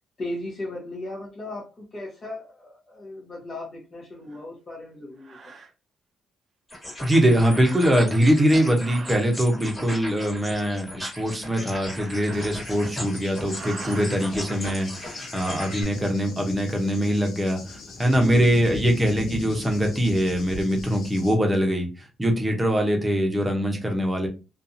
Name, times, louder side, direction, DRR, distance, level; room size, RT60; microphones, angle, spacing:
voice 1, 0.2-5.4 18.0-18.5, left 2 dB, 40° left, -5 dB, 1.0 m, -36 dB
sound 1, 4.3-4.4 5.2-5.7 7.3-8.3 8.7-9.4 11.5-13.0 13.4-14.1, right 5 dB, 45° right, 0.5 m, -42 dB
sound 2, 6.7-15.8, left 1 dB, 20° left, 1.6 m, -37 dB
voice 2, 7.0-24.3, equal, 15° right, 2 dB, 0.8 m, -23 dB
Cricket / Thunder, 12.3-21.3, left 3 dB, 75° left, 0.6 m, -38 dB
2.6 x 2.3 x 2.6 m, 0.31 s
cardioid pair, 90°, 0 cm